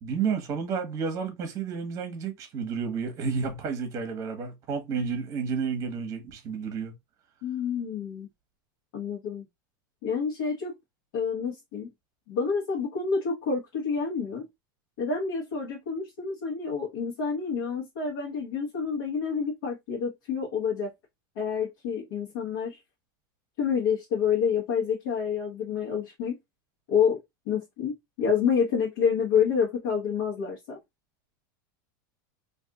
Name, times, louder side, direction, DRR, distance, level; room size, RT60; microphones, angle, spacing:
voice 1, 0.0-6.9, right 6 dB, 30° right, 1.0 m, -31 dB
voice 2, 7.4-8.3 8.9-9.4 10.0-10.7 11.1-11.9 12.3-14.4 15.0-20.9 21.4-22.8 23.6-26.4 26.9-27.2 27.5-30.8, left 6 dB, 65° left, 1.1 m, -28 dB
2.6 x 2.4 x 3.6 m
supercardioid pair, 155°, 11 cm